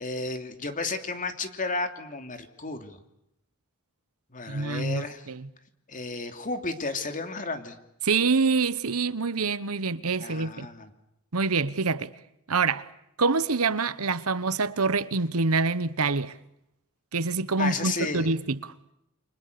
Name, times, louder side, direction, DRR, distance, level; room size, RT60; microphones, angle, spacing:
voice 1, 0.0-3.0 4.3-5.3 5.9-7.8 10.2-10.9 17.6-18.3, left 3 dB, 35° left, 3.0 m, -33 dB
voice 2, 4.5-5.5 8.0-10.7 11.3-12.1 12.5-12.9 13.2-16.4 17.1-18.7, right 4 dB, 70° right, 1.1 m, -26 dB
29.0 x 26.0 x 6.8 m
head